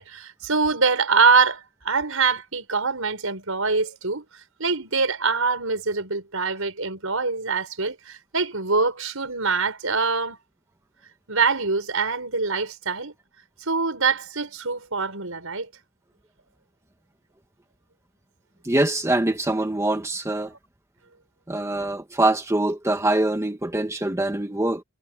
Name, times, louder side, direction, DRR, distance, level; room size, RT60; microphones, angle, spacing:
voice 1, 0.0-4.2 4.6-10.4 11.3-13.1 13.7-15.7, right 4 dB, 75° right, 5.8 m, -24 dB
voice 2, 18.6-20.5 21.5-24.8, right 2 dB, 15° right, 1.2 m, -24 dB
head